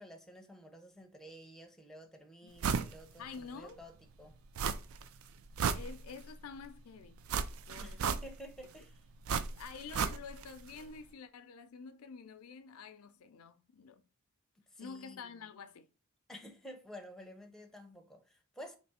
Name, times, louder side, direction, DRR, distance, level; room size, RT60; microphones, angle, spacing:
voice 1, 0.0-4.4 7.8-9.0 14.6-15.5 16.3-18.8, equal, ahead, 0.6 m, -51 dB
sound 1, 2.6-2.9 3.3-3.4 4.6-5.1 5.4-6.3 7.3-8.6 9.3-10.5 10.8-10.9, right 6 dB, 70° right, 0.4 m, -34 dB
voice 2, 3.2-3.8 5.7-7.2 7.7-8.0 9.5-14.0 14.8-15.9, left 5 dB, 90° left, 0.5 m, -48 dB
3.3 x 3.1 x 4.1 m
head